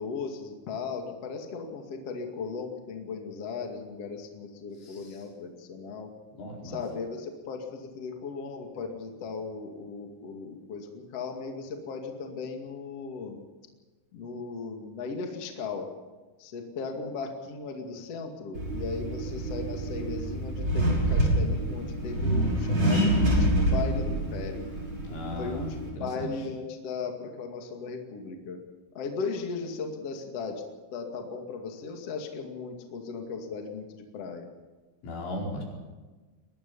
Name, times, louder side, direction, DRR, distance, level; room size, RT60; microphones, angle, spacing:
voice 1, 0.0-6.1 6.6-13.4 14.1-15.9 16.4-24.6 25.4-28.6 28.9-30.6 30.9-34.5, left 5 dB, 40° left, 3 dB, 2.6 m, -37 dB
voice 2, 6.3-6.8 22.2-22.8 25.1-26.3 35.0-35.6, equal, 85° left, -2 dB, 7.3 m, -37 dB
Accelerating revving vroom, 18.5-25.9, right 1 dB, 25° right, 6.1 m, -27 dB
23.0 x 20.0 x 5.6 m, 1.3 s
omnidirectional pair, 5.5 m